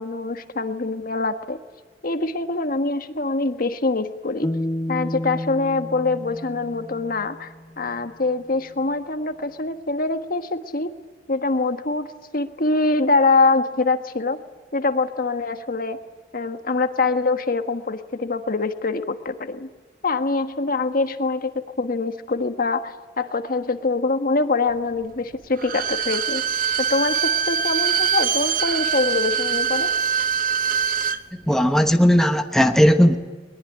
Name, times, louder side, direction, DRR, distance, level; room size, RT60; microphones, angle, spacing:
voice 1, 0.0-1.6 2.0-4.5 4.9-10.9 11.3-12.1 12.3-14.4 14.7-16.0 16.3-19.7 20.0-26.4 26.8-29.9, left 3 dB, 50° left, 8 dB, 1.4 m, -24 dB
sound 1, 4.4-7.6, left 1 dB, 20° left, 0.7 m, -30 dB
Bowed string instrument, 25.6-31.2 31.5-31.6, right 7 dB, 50° right, 1.0 m, -23 dB
voice 2, 31.5-33.2, equal, 5° left, 6 dB, 1.1 m, -16 dB
21.5 x 21.0 x 9.9 m, 1.4 s
head